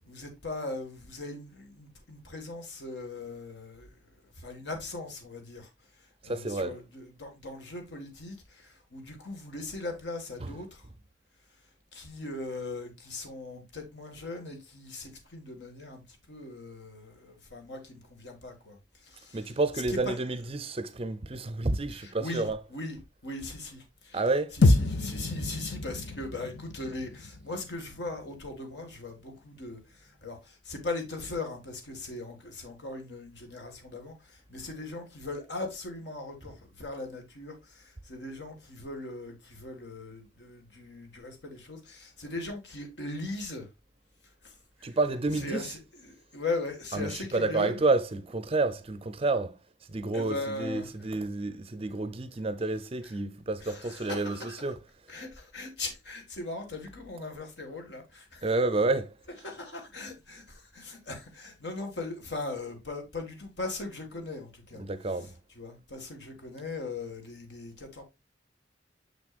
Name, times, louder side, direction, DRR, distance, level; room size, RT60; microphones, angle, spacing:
voice 1, 0.0-5.7 6.0-10.9 11.9-20.5 21.9-43.7 44.4-44.5 44.8-47.9 50.1-51.1 52.6-53.2 53.6-54.7 55.1-58.6 59.4-68.0, left 2 dB, 70° left, 1.9 m, -39 dB
voice 2, 6.2-6.7 10.4-10.5 19.3-22.6 24.1-24.6 44.8-45.6 46.9-49.6 49.9-54.4 54.6-54.8 58.4-59.2 64.8-65.4, right 3 dB, 30° right, 0.5 m, -29 dB
sound 1, 24.6-29.0, left 2 dB, 90° left, 0.7 m, -28 dB
6.6 x 6.1 x 2.4 m
head